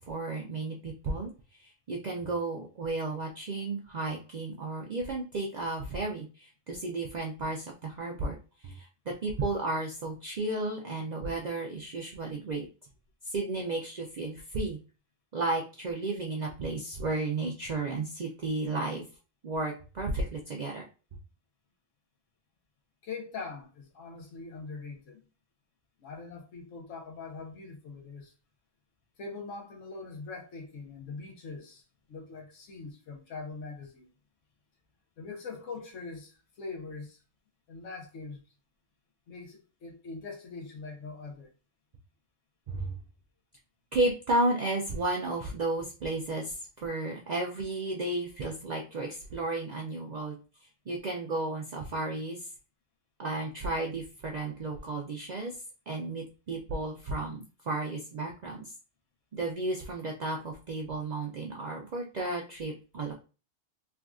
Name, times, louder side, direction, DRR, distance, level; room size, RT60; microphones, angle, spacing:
voice 1, 0.1-12.6 13.2-14.8 15.3-19.0 19.4-20.8 42.7-43.0 43.9-50.4 50.9-52.5 53.2-55.6 55.9-58.6 59.3-63.1, right 2 dB, 60° right, 0.4 m, -33 dB
voice 2, 23.0-25.2 26.0-28.3 29.2-31.8 32.1-34.1 35.2-37.2 37.7-38.4 39.3-41.5, left 4 dB, 80° left, 1.2 m, -42 dB
3.4 x 2.4 x 2.3 m
omnidirectional pair, 1.3 m